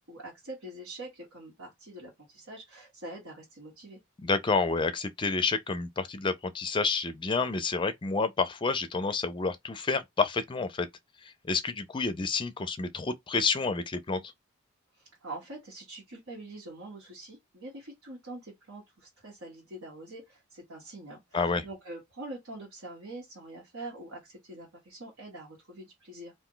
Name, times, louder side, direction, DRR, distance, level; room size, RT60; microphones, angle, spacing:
voice 1, 0.1-4.0 14.9-26.3, right 2 dB, 80° right, 1.3 m, -44 dB
voice 2, 4.2-10.9 11.2-14.2 21.3-21.7, left 4 dB, 25° left, 0.4 m, -29 dB
2.5 x 2.2 x 3.7 m
head